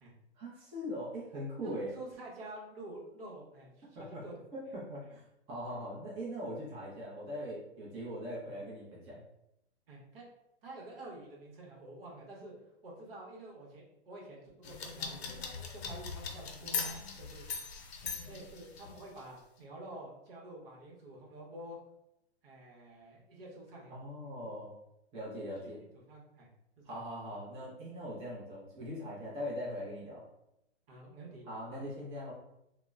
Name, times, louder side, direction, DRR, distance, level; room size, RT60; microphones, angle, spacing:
voice 1, 0.4-1.9 3.9-4.2 4.5-9.2 23.9-24.7 25.1-25.8 26.8-30.2 31.5-32.3, equal, 15° right, -6 dB, 0.6 m, -41 dB
voice 2, 1.6-4.4 5.1-5.2 8.5-8.6 9.9-10.2 10.6-12.5 12.8-15.4 15.7-17.5 18.2-21.8 22.4-23.9 25.6-25.7 25.9-26.5 26.8-27.0 30.9-31.8, right 1 dB, 60° right, -2 dB, 1.0 m, -49 dB
sound 1, 14.6-19.2, left 5 dB, 70° left, 0.6 m, -40 dB
2.9 x 2.1 x 2.3 m, 0.84 s
hypercardioid pair, 120°, 33 cm